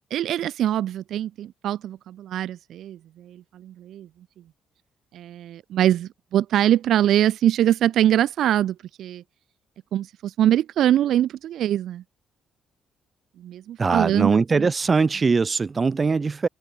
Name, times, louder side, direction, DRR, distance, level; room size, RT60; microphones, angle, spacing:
voice 1, 0.1-4.1 5.1-9.2 9.9-12.0 13.4-14.7, right 11 dB, 75° right, 0.3 m, -23 dB
voice 2, 13.8-16.5, right 4 dB, 30° right, 0.7 m, -21 dB
cardioid pair, 90°, 0 cm